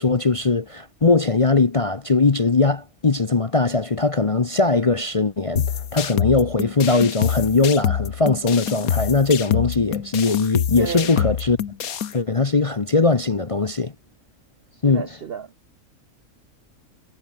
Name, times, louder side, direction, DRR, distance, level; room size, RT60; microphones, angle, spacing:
voice 1, 0.0-11.6 12.1-13.9 14.8-15.1, left 3 dB, 30° left, 0.6 m, -20 dB
sound 1, 5.6-12.1, left 8 dB, 70° left, 1.6 m, -26 dB
voice 2, 10.8-11.1 14.9-15.5, right 8 dB, 60° right, 0.6 m, -31 dB
omnidirectional pair, 1.6 m